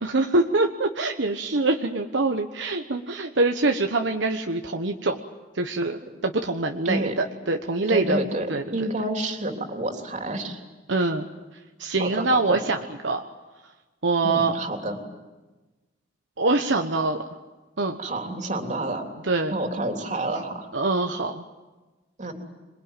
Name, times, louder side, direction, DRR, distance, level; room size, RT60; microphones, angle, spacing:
voice 1, 0.0-5.2 5.5-8.2 8.5-8.6 10.9-11.3 11.8-13.2 14.0-14.5 16.4-17.2 17.8-18.0 19.2-19.6 20.7-21.4, right 2 dB, 70° right, 4 dB, 1.2 m, -24 dB
voice 2, 7.9-10.6 12.0-12.6 14.2-15.0 18.0-19.1 19.5-20.7 22.2-22.3, right 1 dB, 40° right, 3 dB, 3.3 m, -29 dB
26.5 x 22.0 x 9.1 m, 1.2 s
head